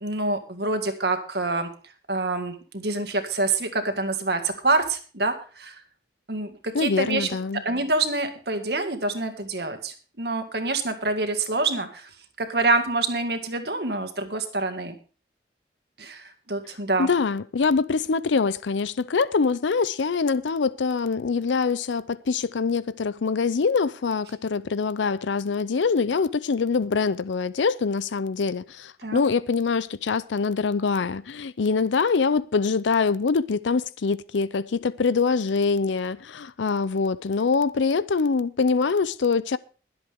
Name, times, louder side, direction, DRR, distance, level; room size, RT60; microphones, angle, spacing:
voice 1, 0.0-1.7 2.1-5.8 6.3-12.1 12.4-14.9 16.0-17.1 29.0-29.2, right 3 dB, 60° right, 2.0 m, -26 dB
voice 2, 6.7-7.6 17.0-39.6, left 4 dB, 85° left, 0.5 m, -24 dB
22.0 x 8.0 x 3.6 m
head